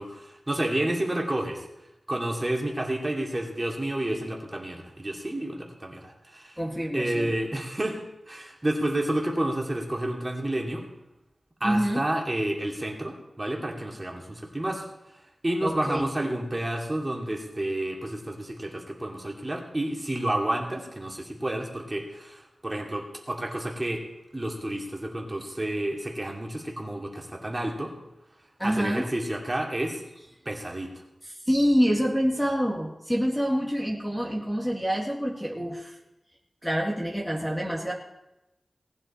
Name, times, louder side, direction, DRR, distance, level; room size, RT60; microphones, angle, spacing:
voice 1, 0.0-1.6 2.1-6.6 6.9-10.9 11.6-14.9 15.4-24.0 24.3-27.9 28.6-30.0 30.4-30.9, right 1 dB, 25° right, 0 dB, 2.7 m, -30 dB
voice 2, 6.6-7.3 11.6-12.0 15.6-16.1 28.6-29.1 31.5-36.0 36.6-37.9, equal, 5° left, -2 dB, 2.2 m, -26 dB
19.0 x 9.9 x 4.4 m, 0.92 s
wide cardioid pair, 75°, 0 cm